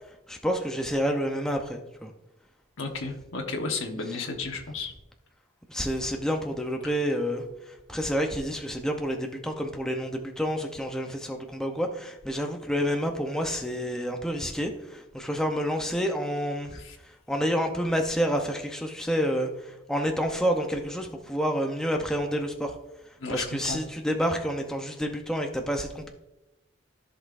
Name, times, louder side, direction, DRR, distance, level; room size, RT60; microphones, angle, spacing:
voice 1, 0.3-2.1 5.7-22.8 23.3-26.1, equal, 5° left, 2 dB, 0.5 m, -29 dB
voice 2, 2.8-4.9 16.7-17.0 23.2-23.8, left 3 dB, 75° left, 1 dB, 1.1 m, -33 dB
14.5 x 5.4 x 2.5 m, 0.97 s
head